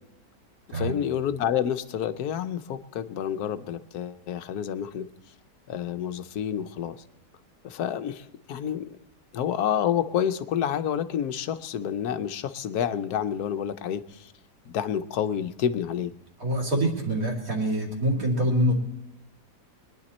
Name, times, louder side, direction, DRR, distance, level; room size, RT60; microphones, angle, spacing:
voice 1, 0.7-5.1 5.7-7.0 7.6-9.0 9.3-14.3 14.7-16.1, left 9 dB, 70° left, 12 dB, 1.2 m, -29 dB
voice 2, 16.4-18.7, right 1 dB, 55° right, 1 dB, 3.1 m, -25 dB
23.0 x 10.5 x 4.2 m, 0.92 s
omnidirectional pair, 1.8 m